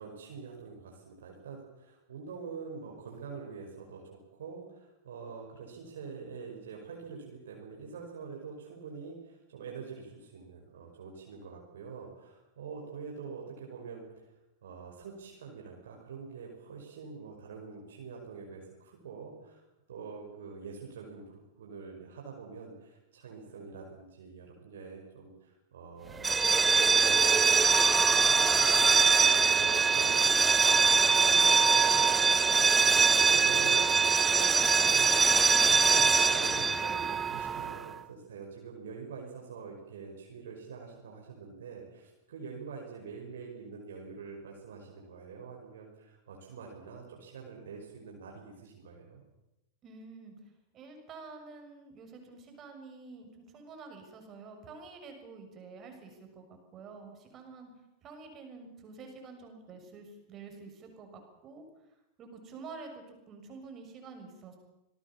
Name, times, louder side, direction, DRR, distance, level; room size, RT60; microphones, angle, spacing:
voice 1, 0.0-14.3 14.6-26.3 26.7-49.2, right 5 dB, 60° right, 0 dB, 5.3 m, -45 dB
sound 1, 26.2-37.9, right 4 dB, 15° right, 1.1 m, -23 dB
voice 2, 49.8-50.3 50.7-57.7 58.0-61.6 62.2-64.6, right 4 dB, 30° right, 4 dB, 6.7 m, -48 dB
27.0 x 19.5 x 7.2 m, 0.91 s
figure-of-eight pair, 90°, 0 cm